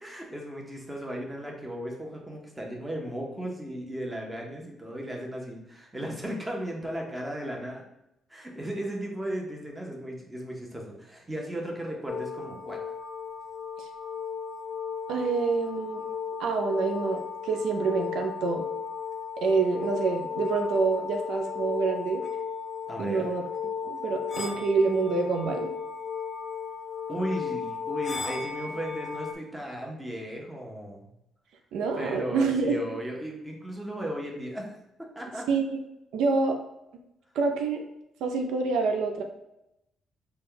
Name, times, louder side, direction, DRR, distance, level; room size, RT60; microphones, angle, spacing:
voice 1, 0.0-7.8 8.3-12.8 22.9-23.3 27.1-31.1 31.9-34.7 35.0-35.5, right 1 dB, 10° right, -1 dB, 0.9 m, -36 dB
sound 1, 12.1-29.3, left 6 dB, 45° left, 0.5 m, -35 dB
voice 2, 15.1-16.0 16.4-18.6 19.4-22.2 23.0-23.4 23.8-25.7 31.7-32.8 35.5-35.7 36.1-36.6 37.4-37.8 38.2-39.2, right 4 dB, 85° right, 3 dB, 0.4 m, -27 dB
4.1 x 2.3 x 3.8 m, 0.86 s
cardioid pair, 90°, 0 cm